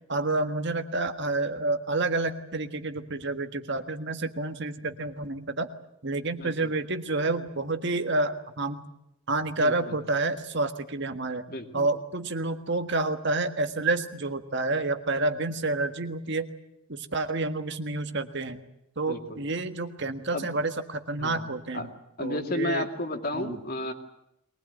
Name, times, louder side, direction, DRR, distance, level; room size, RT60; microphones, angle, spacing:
voice 1, 0.1-5.7 6.0-8.9 9.3-11.4 11.7-16.5 16.9-18.6 19.0-21.9 22.2-22.9 23.3-23.6, right 2 dB, 55° right, 8 dB, 1.6 m, -29 dB
voice 2, 6.4-6.7 9.6-10.0 11.5-11.9 19.1-19.4 20.3-20.5 21.2-21.5 21.7-21.9 22.2-23.9, left 1 dB, 45° left, 5 dB, 2.5 m, -32 dB
22.5 x 19.5 x 9.3 m, 0.83 s
head